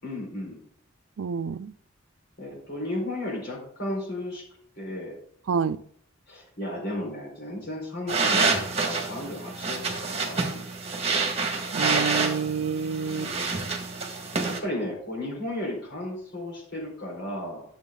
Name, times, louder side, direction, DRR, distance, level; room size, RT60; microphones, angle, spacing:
voice 1, 0.0-0.6 2.4-4.4 4.8-5.2 6.3-10.7 13.1-13.7 14.5-17.6, left 1 dB, 55° left, 4.3 m, -34 dB
voice 2, 1.2-1.7 5.5-5.8 11.7-13.3, right 6 dB, 80° right, 0.4 m, -28 dB
sound 1, 8.1-14.6, right 4 dB, 30° right, 1.7 m, -27 dB
11.0 x 7.1 x 3.8 m
head